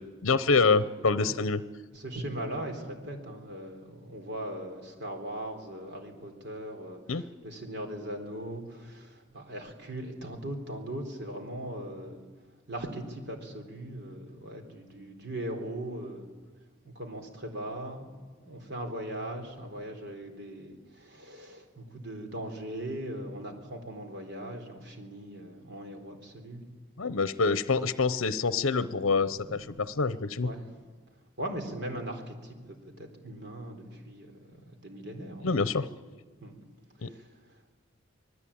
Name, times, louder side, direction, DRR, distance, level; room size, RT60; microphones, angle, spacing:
voice 1, 0.2-1.6 7.1-7.2 27.0-30.5 35.4-35.9 37.0-37.1, left 4 dB, 75° left, 14 dB, 0.8 m, -26 dB
voice 2, 1.9-12.2 12.7-16.3 16.8-26.6 27.1-27.2 29.5-29.9 30.4-30.9 31.4-35.6 36.4-36.6 37.0-37.7, right 1 dB, 50° right, 4 dB, 3.9 m, -39 dB
26.5 x 19.5 x 8.7 m, 1.5 s
head